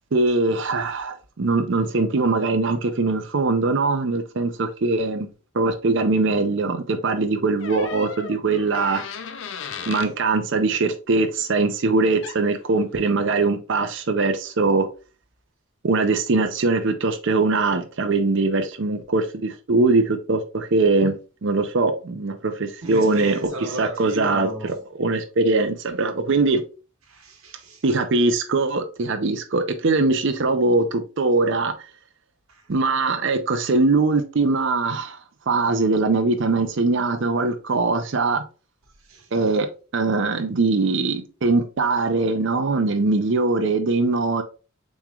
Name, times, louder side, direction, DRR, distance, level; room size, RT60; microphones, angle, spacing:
voice 1, 0.1-5.3 5.5-9.0 9.9-14.9 15.8-23.4 23.8-24.5 25.0-26.6 27.8-31.7 32.7-35.2 35.5-38.4 39.3-44.4, right 3 dB, 55° right, 0.5 m, -21 dB
sound 1, 7.6-10.1 12.2-12.4, left 6 dB, 55° left, 0.4 m, -35 dB
voice 2, 22.8-24.8 27.1-27.8 32.5-32.7 39.0-39.3, right 1 dB, 75° right, 1.2 m, -34 dB
7.0 x 3.1 x 2.4 m
head